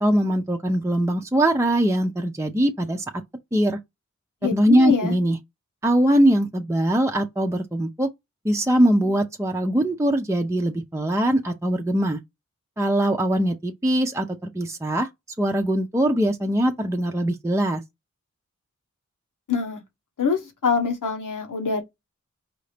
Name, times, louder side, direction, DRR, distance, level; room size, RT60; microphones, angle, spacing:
voice 1, 0.0-3.0 3.5-3.8 4.5-5.4 5.8-8.1 8.4-12.2 12.8-14.3 14.5-15.1 15.4-17.8, right 1 dB, 10° right, 0.6 m, -21 dB
voice 2, 4.4-5.1 19.5-19.8 20.2-21.8, left 5 dB, 90° left, 1.4 m, -24 dB
4.9 x 2.7 x 3.4 m
wide cardioid pair, 50°, 31 cm